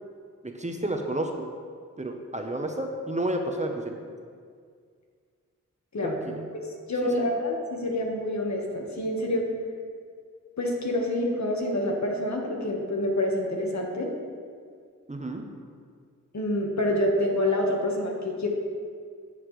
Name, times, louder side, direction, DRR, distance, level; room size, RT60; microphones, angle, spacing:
voice 1, 0.4-1.5 2.0-4.0 6.0-6.4 7.0-7.3 15.1-15.4, right 1 dB, 20° right, 3 dB, 1.0 m, -31 dB
voice 2, 6.5-9.4 10.6-14.1 16.3-18.5, left 1 dB, 60° left, 0 dB, 1.5 m, -27 dB
9.8 x 7.2 x 3.2 m, 2.1 s
cardioid pair, 45°, 32 cm